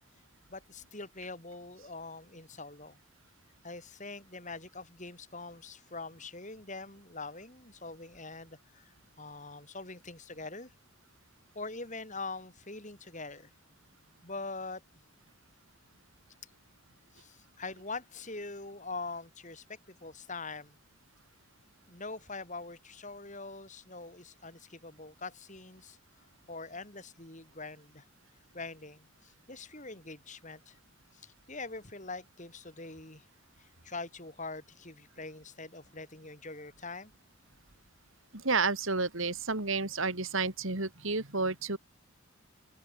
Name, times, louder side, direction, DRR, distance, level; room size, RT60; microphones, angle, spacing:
voice 1, 0.5-3.0 3.6-10.7 11.5-13.5 14.2-14.8 16.4-16.5 17.1-20.8 21.9-26.0 26.5-28.1 28.5-30.8 31.1-33.3 33.6-37.1, left 3 dB, 35° left, 5.8 m, -43 dB
voice 2, 38.3-41.8, right 3 dB, 65° right, 2.9 m, -31 dB
open air
head